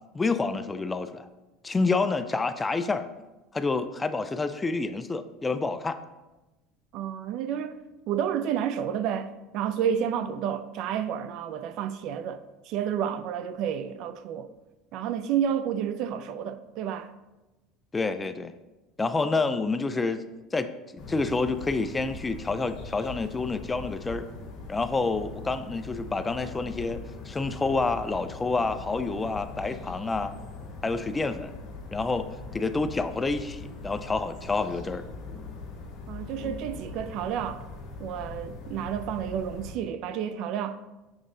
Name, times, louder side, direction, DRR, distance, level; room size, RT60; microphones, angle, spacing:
voice 1, 0.1-1.3 1.6-3.1 3.5-6.0 17.9-18.5 19.0-20.2 20.5-24.3 24.7-30.3 30.8-31.5 31.9-32.3 32.5-35.0, left 3 dB, 15° left, 0.3 m, -28 dB
voice 2, 6.9-7.8 8.1-14.5 14.9-17.1 36.1-37.6 38.0-40.8, right 9 dB, 60° right, 0.4 m, -30 dB
sound 1, 21.0-39.7, left 3 dB, 45° left, 1.5 m, -41 dB
7.1 x 3.8 x 3.8 m
supercardioid pair, 125°, 0 cm